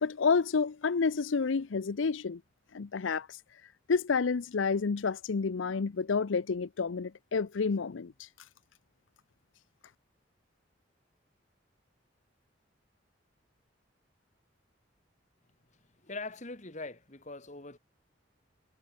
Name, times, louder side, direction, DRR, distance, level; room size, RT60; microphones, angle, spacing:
voice 1, 0.0-2.4 2.7-3.4 3.9-8.3, left 5 dB, 90° left, 0.6 m, -29 dB
voice 2, 16.0-17.8, left 3 dB, 40° left, 2.5 m, -42 dB
head